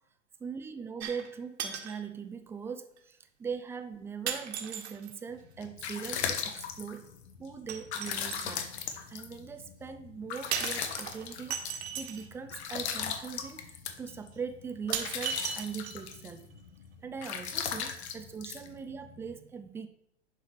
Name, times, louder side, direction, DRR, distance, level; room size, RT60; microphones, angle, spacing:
voice 1, 0.4-7.1 7.4-16.5 17.0-19.9, right 6 dB, 5° right, 7 dB, 0.4 m, -41 dB
sound 1, 1.0-1.3 1.6-2.0 3.0-3.1 4.3-5.2 7.7-8.6 10.5-12.3 13.4-13.5 14.1-14.2 14.9-16.2 16.5-16.6, right 8 dB, 60° right, 1.8 m, -36 dB
sound 2, 5.4-19.3, left 7 dB, 60° left, 1.6 m, -38 dB
11.0 x 4.8 x 5.8 m, 0.76 s
hypercardioid pair, 120°, 37 cm